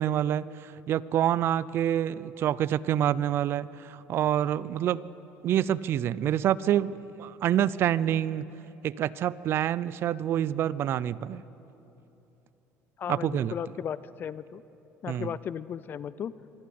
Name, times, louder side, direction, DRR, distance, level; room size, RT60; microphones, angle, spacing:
voice 1, 0.0-5.0 5.4-8.5 8.8-11.4 13.1-13.5 15.1-15.3, right 11 dB, 50° right, 19 dB, 0.5 m, -27 dB
voice 2, 13.0-14.6 15.0-16.3, left 8 dB, 40° left, 17 dB, 0.5 m, -35 dB
25.5 x 11.5 x 9.5 m, 3.0 s
cardioid pair, 120°, 5 cm